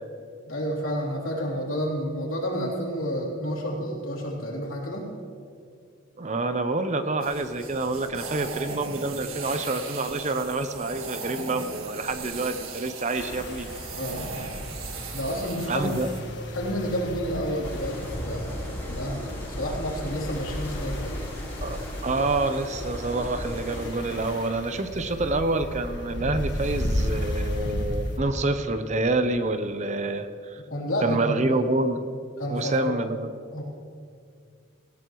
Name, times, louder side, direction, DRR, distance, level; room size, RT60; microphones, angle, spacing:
voice 1, 0.5-5.1 13.9-14.4 15.1-16.0 16.5-21.2 30.7-31.6 32.4-32.9 33.5-33.6, equal, 80° left, -2 dB, 3.2 m, -30 dB
voice 2, 6.2-13.7 14.4-14.5 15.7-16.1 21.6-30.6 31.0-32.0 32.5-33.3, right 2 dB, 35° right, 9 dB, 0.6 m, -27 dB
sound 1, 7.2-16.2, right 4 dB, 85° right, 1.6 m, -38 dB
sound 2, 13.1-28.2, left 1 dB, 55° left, 1.6 m, -34 dB
sound 3, 17.6-23.9, left 1 dB, 10° left, 3.5 m, -39 dB
17.5 x 17.0 x 3.1 m, 2.3 s
head